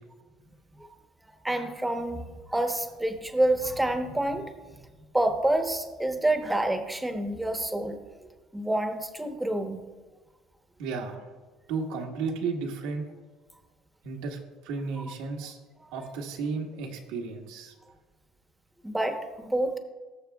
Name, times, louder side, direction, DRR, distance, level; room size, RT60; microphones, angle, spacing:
voice 1, 1.4-2.2 2.5-4.4 5.1-9.8 18.8-19.8, right 1 dB, 5° right, 6 dB, 1.0 m, -28 dB
voice 2, 10.8-11.3 11.7-13.0 14.0-15.6 15.9-17.7, right 4 dB, 85° right, 1 dB, 1.5 m, -33 dB
19.5 x 6.7 x 2.3 m, 1.3 s
cardioid pair, 120°, 0 cm